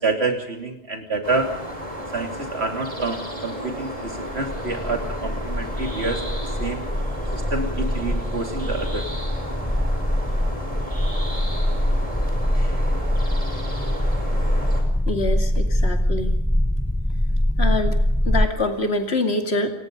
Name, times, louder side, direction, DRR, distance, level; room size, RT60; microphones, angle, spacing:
voice 1, 0.0-1.5 2.1-6.3 6.6-6.8 7.3-9.0 12.5-12.8, right 3 dB, 65° right, 4 dB, 3.3 m, -27 dB
sound 1, 1.2-14.8, equal, 30° right, 5.5 m, -34 dB
sound 2, 4.1-18.5, equal, 5° left, 0.7 m, -23 dB
voice 2, 15.0-16.3 17.6-18.0 18.2-19.7, left 2 dB, 65° left, 5 dB, 2.7 m, -25 dB
28.5 x 19.5 x 5.3 m, 0.79 s
omnidirectional pair, 1.2 m